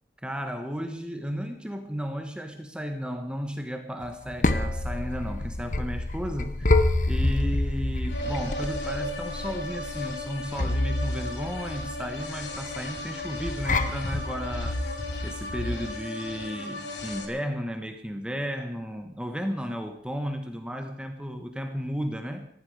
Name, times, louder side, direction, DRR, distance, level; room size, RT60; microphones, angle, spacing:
voice 1, 0.2-6.7 7.1-14.8 15.2-22.5, equal, 5° right, 5 dB, 1.4 m, -34 dB
sound 1, 4.0-15.9, left 2 dB, 45° left, 1.2 m, -28 dB
sound 2, 8.1-17.3, left 1 dB, 90° left, 3.0 m, -36 dB
18.5 x 14.5 x 5.0 m, 0.64 s
head